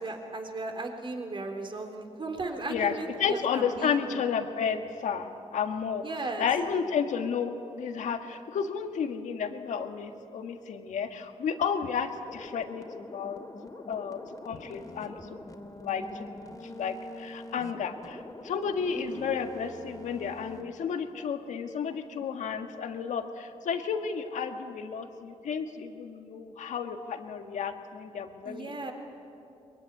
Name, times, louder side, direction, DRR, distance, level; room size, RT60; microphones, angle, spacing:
voice 1, 0.0-4.0 6.0-6.5 18.9-19.4 28.4-28.9, right 3 dB, 45° right, 4 dB, 3.7 m, -36 dB
voice 2, 2.7-13.4 13.9-15.5 15.8-16.2 16.6-28.9, left 6 dB, 90° left, 6 dB, 1.6 m, -32 dB
sound 1, 12.3-20.6, left 1 dB, 30° left, 2.6 m, -45 dB
22.5 x 22.0 x 9.6 m, 2.6 s
cardioid pair, 75°, 12 cm